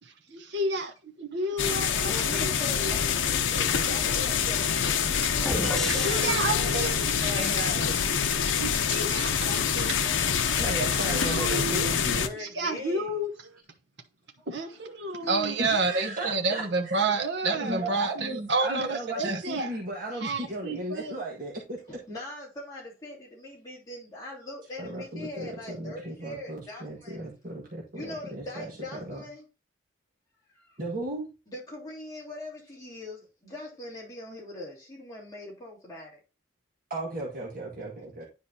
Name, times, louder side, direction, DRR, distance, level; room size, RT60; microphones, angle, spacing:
voice 1, 0.0-2.5 2.8-2.9 6.0-7.9 8.6-10.1 11.0-11.5 12.4-13.3 14.5-19.7 20.2-21.2, right 2 dB, 65° right, 1.0 m, -30 dB
sound 1, 1.6-12.3, left 7 dB, 80° left, 0.6 m, -26 dB
voice 2, 2.1-8.3 12.1-13.2 14.4-14.7 15.0-15.3 15.8-16.1 21.9-27.2 27.9-29.4 30.5-30.8 31.5-36.2, left 1 dB, 20° left, 2.9 m, -42 dB
sound 2, 4.7-7.5 10.6-12.5 13.4-13.6, right 4 dB, 85° right, 0.7 m, -38 dB
sound 3, 5.4-7.1, left 1 dB, ahead, 0.3 m, -34 dB
voice 3, 10.6-12.3 15.6-17.1 17.6-21.8 24.8-28.7 29.1-29.2 30.8-31.3 36.9-38.2, right 1 dB, 45° right, 1.7 m, -35 dB
10.0 x 4.6 x 2.8 m
head